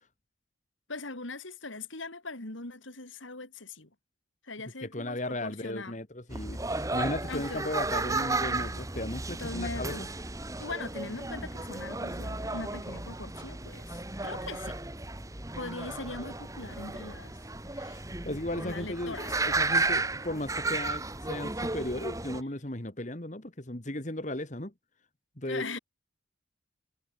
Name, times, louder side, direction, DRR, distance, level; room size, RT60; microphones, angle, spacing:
voice 1, 0.9-3.9 4.4-6.0 7.3-7.6 9.4-10.1 10.6-14.8 15.6-18.0 18.6-19.4 25.4-25.8, left 3 dB, 85° left, 3.9 m, -41 dB
voice 2, 4.8-10.1 18.2-24.7 25.4-25.8, left 1 dB, 40° left, 2.1 m, -36 dB
sound 1, 6.3-22.4, right 3 dB, 15° right, 1.7 m, -34 dB
head